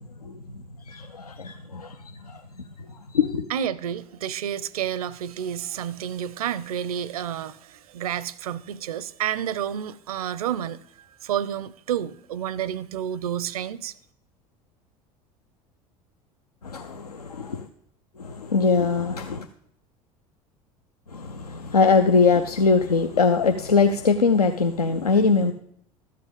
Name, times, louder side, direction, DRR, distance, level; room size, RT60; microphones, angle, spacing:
voice 1, 0.9-2.0 2.2-2.4 3.1-3.4 16.6-17.7 18.2-19.5 21.1-25.5, left 4 dB, 90° left, 0.5 m, -22 dB
voice 2, 3.5-13.9, right 10 dB, 75° right, 0.5 m, -30 dB
13.5 x 7.6 x 5.1 m
figure-of-eight pair, 70°, 19 cm